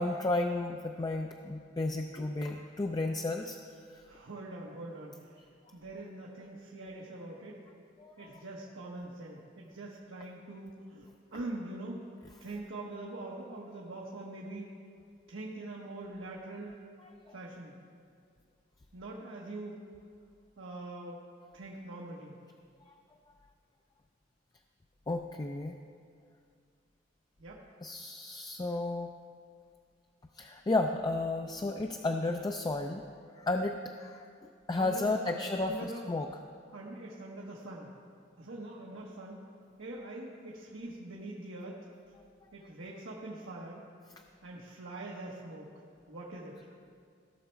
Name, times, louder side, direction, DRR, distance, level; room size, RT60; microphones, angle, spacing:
voice 1, 0.0-3.6 3.9-4.0 8.0-8.3 17.3-17.4 22.9-23.0 25.1-25.7 27.8-29.1 30.4-33.0 33.4-34.3 34.7-36.3, left 2 dB, 20° left, 4 dB, 0.4 m, -33 dB
voice 2, 4.0-5.1 5.7-7.6 8.2-12.0 12.4-14.8 15.3-16.8 17.3-17.8 18.9-19.8 20.6-21.2 21.5-22.4 27.4-27.6 34.8-36.0 36.7-37.9 38.4-39.4 39.8-41.8 42.5-43.8 44.4-45.7 46.1-46.6, right 2 dB, 80° right, -4 dB, 1.2 m, -43 dB
16.0 x 6.3 x 4.5 m, 2.2 s
head